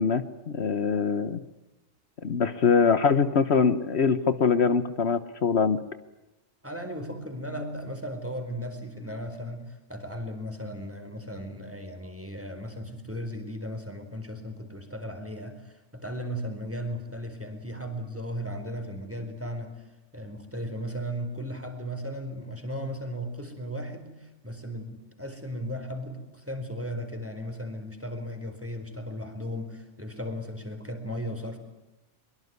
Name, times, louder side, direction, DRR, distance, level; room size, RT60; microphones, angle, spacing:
voice 1, 0.0-1.4 2.2-5.8, left 5 dB, 65° left, 12 dB, 1.4 m, -23 dB
voice 2, 6.6-19.7 20.1-31.6, equal, 10° right, 7 dB, 4.4 m, -36 dB
24.0 x 23.5 x 9.5 m, 0.97 s
omnidirectional pair, 1.2 m